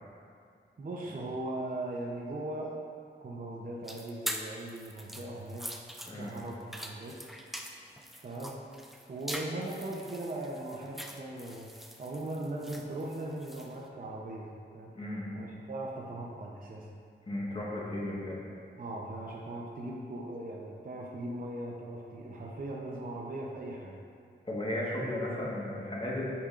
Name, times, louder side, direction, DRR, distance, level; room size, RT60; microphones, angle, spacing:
voice 1, 0.8-2.8 3.2-5.7 6.1-7.3 8.2-8.6 9.1-14.9 15.4-16.9 18.1-18.2 18.8-24.0, right 1 dB, 45° right, -2 dB, 0.6 m, -39 dB
sound 1, 3.8-13.8, equal, ahead, 0.4 m, -43 dB
voice 2, 14.9-15.3 17.3-18.4 24.4-26.3, left 1 dB, 30° left, -6 dB, 1.4 m, -35 dB
8.5 x 5.0 x 2.5 m, 2.3 s
wide cardioid pair, 105°, 20 cm